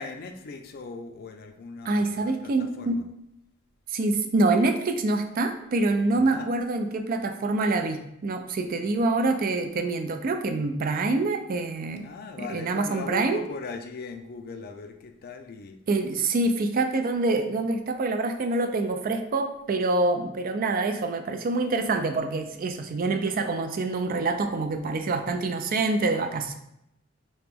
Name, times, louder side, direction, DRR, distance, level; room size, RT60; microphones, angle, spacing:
voice 1, 0.0-2.5 2.8-3.0 6.3-6.5 12.0-15.8, left 4 dB, 50° left, 6 dB, 0.4 m, -39 dB
voice 2, 1.8-3.0 3.9-12.1 12.4-13.4 15.9-26.5, right 2 dB, 45° right, 7 dB, 0.4 m, -26 dB
3.1 x 2.9 x 3.5 m, 0.80 s
head